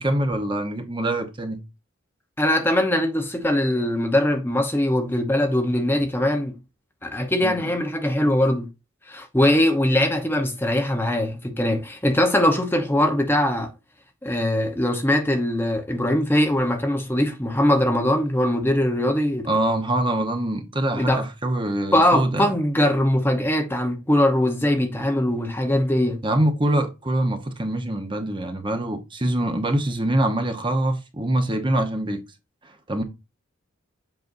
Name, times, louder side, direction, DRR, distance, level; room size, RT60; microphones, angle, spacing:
voice 1, 0.0-1.6 7.4-7.7 19.4-22.5 26.2-32.2 32.6-33.0, right 1 dB, 20° right, 0.9 m, -24 dB
voice 2, 2.4-6.6 7.0-8.7 9.1-13.7 14.2-19.5 20.9-21.2 21.9-26.2, left 1 dB, 10° left, 0.8 m, -21 dB
7.9 x 5.4 x 2.6 m
head